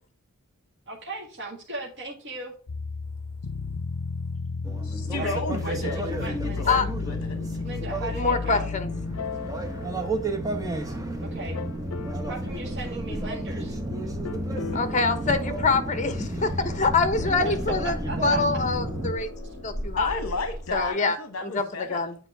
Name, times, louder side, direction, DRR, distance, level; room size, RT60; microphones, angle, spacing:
voice 1, 0.9-2.5 5.1-6.8 7.6-8.7 11.2-11.6 12.3-13.8 14.5-14.8 17.4-17.6 17.8-18.4, right 2 dB, 55° right, 1.9 m, -37 dB
sound 1, 2.7-11.0 11.5-12.4 14.3-16.0 17.1-19.7, left 4 dB, 90° left, 0.5 m, -35 dB
sound 2, 4.6-19.1, right 1 dB, 15° right, 1.1 m, -32 dB
voice 2, 4.8-6.0 6.4-7.4 20.0-22.0, left 3 dB, 65° left, 1.0 m, -32 dB
sound 3, 7.2-20.9, equal, 80° right, 2.2 m, -41 dB
voice 3, 8.1-8.9 14.7-17.9 18.2-19.3 19.6-20.1 20.7-22.2, left 4 dB, 35° left, 1.1 m, -25 dB
8.9 x 4.7 x 3.4 m
head